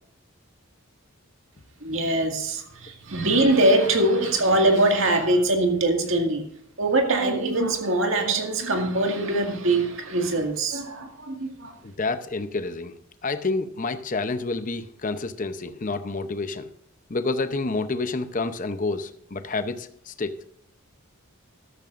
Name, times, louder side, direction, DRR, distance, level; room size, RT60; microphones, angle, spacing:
voice 1, 1.8-6.4 6.8-11.7, right 2 dB, 65° right, 3 dB, 2.0 m, -22 dB
voice 2, 11.8-12.9 13.2-16.7 17.1-20.4, left 3 dB, 35° left, 9 dB, 0.7 m, -29 dB
13.5 x 13.0 x 2.5 m, 0.72 s
head